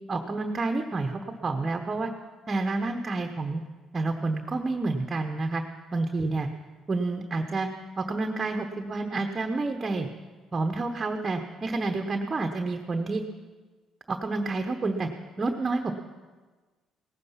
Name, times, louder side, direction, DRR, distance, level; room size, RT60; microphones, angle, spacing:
voice 1, 0.1-2.1 2.5-3.6 3.9-5.6 5.9-6.5 6.9-7.7 8.0-10.1 10.5-13.2 14.1-15.1 15.4-15.9, right 3 dB, 30° right, 4 dB, 1.1 m, -29 dB
18.0 x 9.7 x 5.8 m, 1.4 s
supercardioid pair, 80°, 0 cm